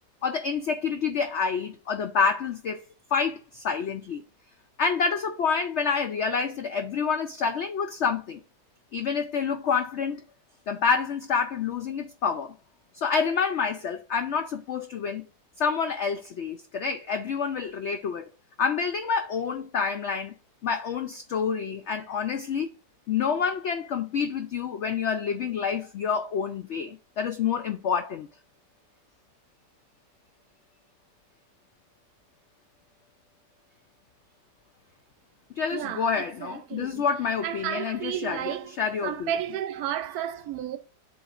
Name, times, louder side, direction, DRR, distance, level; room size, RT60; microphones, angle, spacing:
voice 1, 0.2-2.8 3.1-4.2 4.8-8.4 8.9-10.2 10.7-12.6 12.9-15.3 15.6-18.3 18.6-20.3 20.6-22.7 23.1-28.3 35.6-39.3, left 6 dB, 85° left, 0.6 m, -28 dB
voice 2, 35.7-37.0 37.4-38.7 39.0-40.8, right 10 dB, 70° right, 1.1 m, -32 dB
11.0 x 3.9 x 2.5 m
omnidirectional pair, 1.8 m